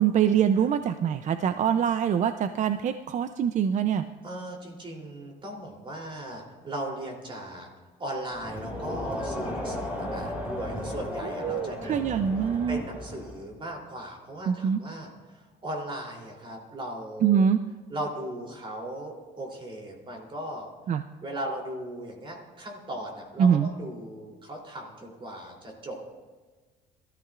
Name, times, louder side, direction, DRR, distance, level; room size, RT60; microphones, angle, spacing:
voice 1, 0.0-4.1 11.4-12.8 14.5-14.8 17.2-17.6 20.9-21.0 23.4-23.7, right 8 dB, 45° right, 10 dB, 0.5 m, -24 dB
voice 2, 4.2-7.7 8.0-11.9 12.7-17.4 17.9-20.7 21.2-26.1, right 1 dB, 30° right, 0 dB, 3.2 m, -38 dB
Crowd, 8.3-13.5, left 1 dB, 10° right, 4.0 m, -35 dB
22.5 x 14.0 x 2.5 m, 1.4 s
cardioid pair, 110°, 17 cm